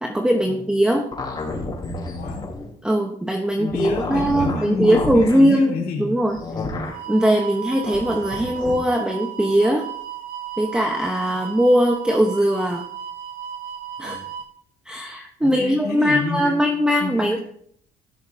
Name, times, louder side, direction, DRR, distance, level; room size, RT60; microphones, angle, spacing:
voice 1, 0.0-1.1 2.8-6.4 7.1-9.9 10.6-12.8 14.0-14.2 14.9-17.4, equal, 5° right, 2 dB, 1.0 m, -20 dB
sound 1, 1.1-2.7 3.6-5.4 6.3-7.0 7.8-8.7, left 2 dB, 25° left, 3.8 m, -30 dB
voice 2, 2.1-2.5 3.6-6.2 6.5-6.9 14.0-14.3 15.4-16.6 17.0-17.4, left 5 dB, 70° left, -1 dB, 3.3 m, -29 dB
sound 2, 6.9-14.5, right 9 dB, 65° right, 1.9 m, -34 dB
17.0 x 6.4 x 2.8 m, 0.62 s
cardioid pair, 110°, 17 cm